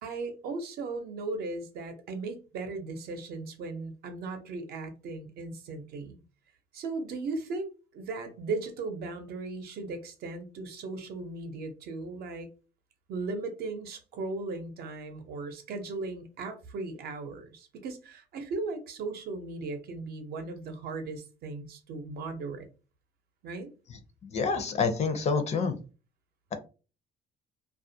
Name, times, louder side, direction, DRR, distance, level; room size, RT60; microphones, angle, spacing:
voice 1, 0.0-6.2 6.7-12.5 13.1-22.7 23.4-23.7, right 3 dB, 65° right, 0.6 m, -37 dB
voice 2, 23.9-25.7, left 5 dB, 40° left, 0.5 m, -28 dB
2.3 x 2.1 x 2.7 m
cardioid pair, 110°, 17 cm